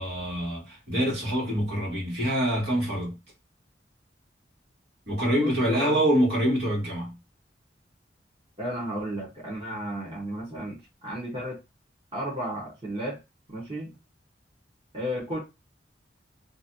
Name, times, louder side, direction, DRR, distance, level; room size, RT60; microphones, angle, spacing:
voice 1, 0.0-3.2 5.1-7.2, equal, 65° right, 1.9 m, -25 dB
voice 2, 5.4-6.0 8.6-11.6 12.1-13.2 13.5-13.9 14.9-15.4, equal, 30° right, 1.2 m, -33 dB
3.1 x 2.6 x 2.7 m
head